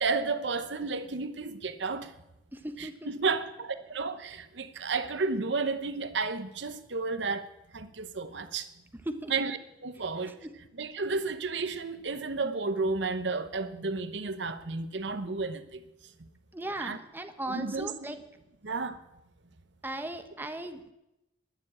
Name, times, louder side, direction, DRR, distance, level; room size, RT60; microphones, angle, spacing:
voice 1, 0.0-2.1 2.8-7.5 7.7-8.7 9.3-9.6 9.8-10.4 10.8-15.8 16.8-17.0 17.5-18.1 18.6-19.0, right 4 dB, 65° right, 0.9 m, -32 dB
voice 2, 2.5-3.3 9.0-9.3 10.0-10.1 10.4-10.5 16.5-18.2 19.8-20.9, right 1 dB, 10° right, 1.1 m, -37 dB
20.5 x 7.2 x 8.7 m
head